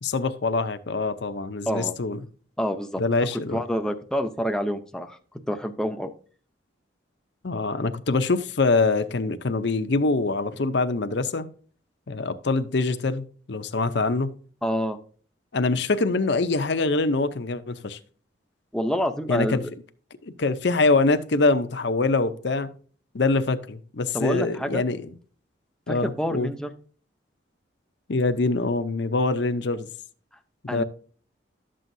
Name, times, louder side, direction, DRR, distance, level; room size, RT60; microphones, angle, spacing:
voice 1, 0.0-2.2 3.0-3.6 7.4-11.5 12.1-14.3 15.5-18.0 19.3-19.6 20.2-22.7 23.1-25.1 25.9-26.5 28.1-29.9 30.6-30.8, left 3 dB, 60° left, 0.7 m, -24 dB
voice 2, 2.6-3.0 3.5-5.2 5.5-6.1 14.6-15.0 18.7-19.7 24.1-24.8 25.9-26.7 30.7-30.8, equal, 5° left, 0.6 m, -27 dB
12.0 x 7.6 x 2.7 m
head